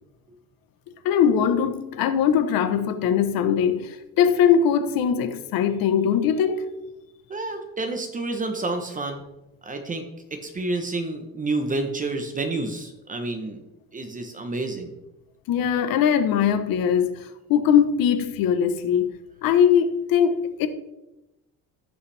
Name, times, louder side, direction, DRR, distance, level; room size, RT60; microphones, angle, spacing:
voice 1, 1.0-6.7 15.5-19.1 19.4-20.7, left 8 dB, 75° left, 1.1 m, -21 dB
voice 2, 7.3-9.2 9.6-10.0 10.3-13.6 13.9-14.9, right 2 dB, 25° right, 0.9 m, -29 dB
15.5 x 5.6 x 3.4 m
cardioid pair, 135°, 35 cm